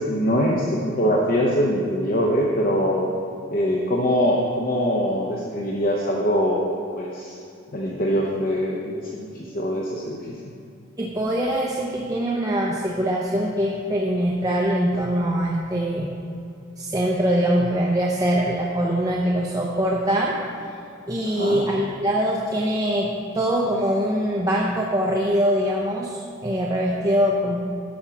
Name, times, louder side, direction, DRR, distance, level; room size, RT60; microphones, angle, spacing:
voice 1, 0.0-3.1 3.5-6.7 7.0-7.3 7.7-10.5 21.2-21.6, equal, 45° left, -2 dB, 0.8 m, -23 dB
voice 2, 11.0-16.1 16.8-20.4 21.1-27.6, equal, 20° right, -2 dB, 0.6 m, -23 dB
10.5 x 5.6 x 5.9 m, 2.6 s
head